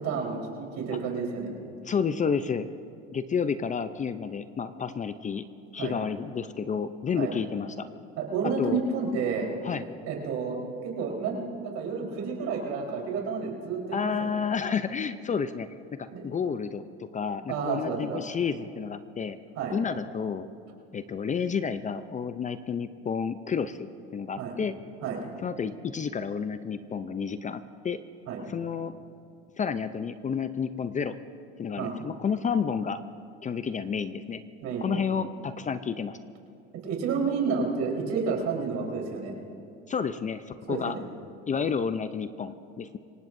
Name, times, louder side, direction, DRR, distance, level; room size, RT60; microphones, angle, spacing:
voice 1, 0.0-1.5 5.8-6.0 7.2-7.3 8.2-9.5 10.1-14.4 16.1-16.2 17.5-18.2 19.6-19.8 24.4-24.6 25.0-25.2 28.3-28.4 31.8-31.9 34.6-35.0 36.8-39.3 40.7-41.0, right 5 dB, 65° right, -1 dB, 4.3 m, -30 dB
voice 2, 1.8-2.7 3.1-5.4 5.7-7.9 8.6-8.8 9.6-9.9 13.9-16.8 17.1-19.4 19.7-20.5 20.9-23.9 24.1-24.7 25.4-28.0 28.5-28.9 29.6-31.1 31.6-33.0 33.4-34.4 34.8-36.2 39.9-41.0 41.5-43.0, left 6 dB, 25° left, 12 dB, 0.6 m, -30 dB
26.5 x 18.0 x 2.7 m, 2.5 s
supercardioid pair, 95°, 29 cm